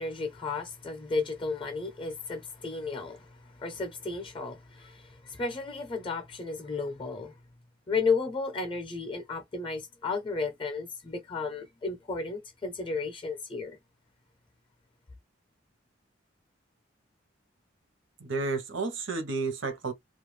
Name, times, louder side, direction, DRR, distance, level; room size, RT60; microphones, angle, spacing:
voice 1, 0.0-7.3 7.9-13.8, left 4 dB, 25° left, 0.6 m, -33 dB
voice 2, 18.2-19.9, right 3 dB, 70° right, 0.8 m, -31 dB
2.3 x 2.2 x 3.1 m
head